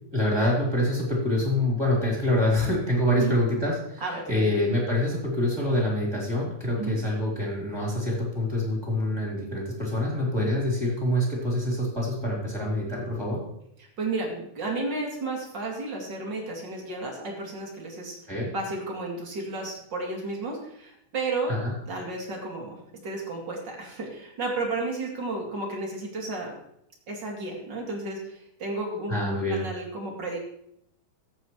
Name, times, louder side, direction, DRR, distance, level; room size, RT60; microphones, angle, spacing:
voice 1, 0.1-4.0 4.3-13.4 18.3-18.5 21.5-21.7 29.1-29.6, left 1 dB, 5° right, -4 dB, 2.9 m, -26 dB
voice 2, 4.0-4.6 6.8-7.0 13.8-18.2 18.5-21.6 21.9-26.5 27.1-30.4, right 2 dB, 35° right, -1 dB, 2.2 m, -33 dB
16.0 x 8.4 x 3.2 m, 0.76 s
omnidirectional pair, 4.6 m